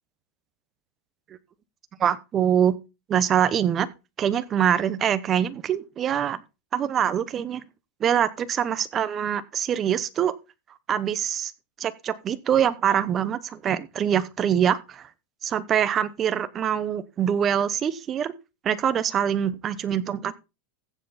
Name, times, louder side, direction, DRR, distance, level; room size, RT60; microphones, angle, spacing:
voice 1, 2.0-2.7 3.1-3.9 4.2-6.4 6.7-7.6 8.0-10.4 10.9-11.5 11.8-15.1 15.4-18.3 18.6-20.3, right 9 dB, 20° right, 0.9 m, -24 dB
15.0 x 7.8 x 4.2 m
supercardioid pair, 165°, 0 cm